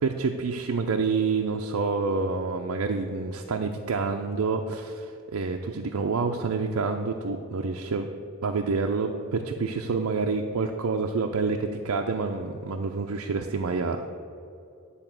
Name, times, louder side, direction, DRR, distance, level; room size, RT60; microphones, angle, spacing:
voice 1, 0.0-8.1 8.4-14.1, right 4 dB, 85° right, 3 dB, 0.5 m, -28 dB
10.0 x 4.1 x 7.4 m, 2.6 s
head